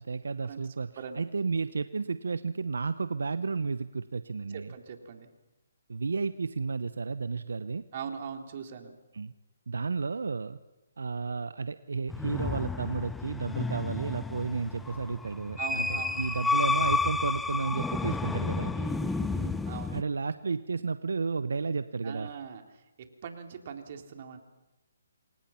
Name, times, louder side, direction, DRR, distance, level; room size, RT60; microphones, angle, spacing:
voice 1, 0.0-4.7 5.9-7.8 9.1-9.3 9.7-10.6 11.0-18.7 19.9-22.3, right 4 dB, 75° right, 12 dB, 1.0 m, -32 dB
voice 2, 4.5-5.3 7.9-9.0 15.6-16.2 18.7-20.0 22.0-24.4, right 7 dB, 45° right, 4 dB, 3.7 m, -41 dB
sound 1, 12.1-20.0, left 3 dB, 5° left, 0.8 m, -31 dB
28.0 x 24.0 x 5.9 m, 1.0 s
figure-of-eight pair, 145°, 0 cm